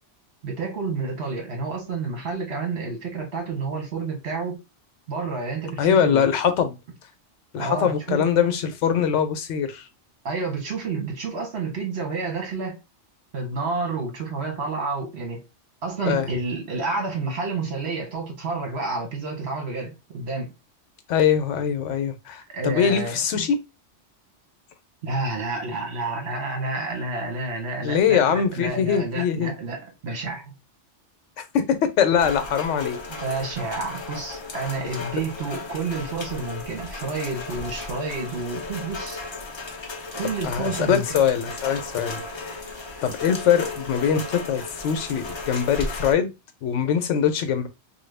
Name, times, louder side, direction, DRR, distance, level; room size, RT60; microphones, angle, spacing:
voice 1, 0.4-4.6 5.1-6.3 7.6-8.3 10.2-12.8 13.3-15.4 15.8-20.5 22.5-23.5 25.0-30.5 33.1-39.2 40.1-41.2, right 3 dB, 65° right, 1.4 m, -29 dB
voice 2, 5.8-6.8 7.5-9.9 16.0-16.3 21.1-23.6 27.8-29.5 31.4-33.0 40.4-42.6 43.0-46.3 46.6-47.7, left 8 dB, 85° left, 1.0 m, -22 dB
Rain, 32.2-46.1, left 3 dB, 40° left, 0.4 m, -35 dB
3.1 x 2.3 x 3.2 m
omnidirectional pair, 1.2 m